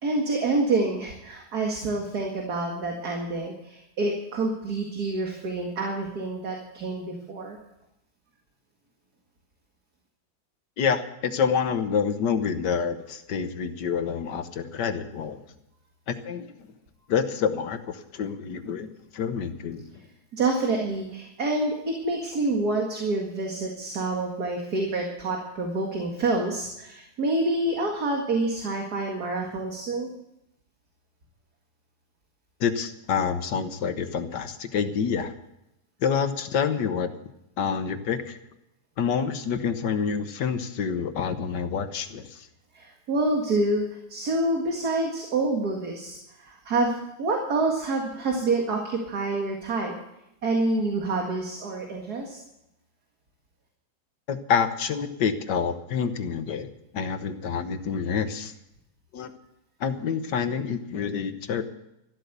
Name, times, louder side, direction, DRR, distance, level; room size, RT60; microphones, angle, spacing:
voice 1, 0.0-7.6 20.3-30.1 42.7-50.0 50.4-52.4, right 2 dB, 60° right, 1 dB, 2.5 m, -27 dB
voice 2, 10.8-15.4 16.1-16.5 17.1-19.8 32.6-35.3 36.0-37.1 37.6-38.4 39.0-42.5 54.3-58.5 59.1-59.3 59.8-61.7, left 6 dB, 75° left, 9 dB, 1.7 m, -27 dB
14.0 x 12.5 x 6.8 m, 0.84 s
omnidirectional pair, 1.9 m